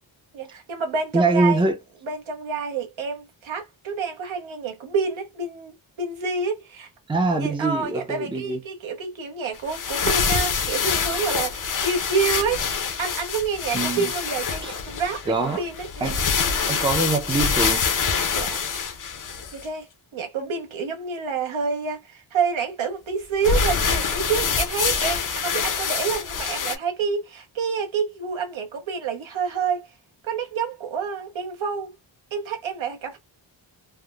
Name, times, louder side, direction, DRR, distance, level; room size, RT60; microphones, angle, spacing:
voice 1, 0.3-1.6 2.0-6.9 7.3-12.7 13.0-16.2 18.3-18.6 19.5-29.9 30.2-31.9 32.3-33.2, right 5 dB, 75° right, 0.9 m, -28 dB
voice 2, 1.1-1.8 7.1-8.6 13.7-14.1 14.6-14.7 15.3-15.6 16.0-16.2 16.7-17.8, right 3 dB, 10° right, 0.5 m, -23 dB
sound 1, 9.5-19.6 23.4-26.7, left 6 dB, 40° left, 0.6 m, -25 dB
3.3 x 2.0 x 2.3 m
wide cardioid pair, 120°, 48 cm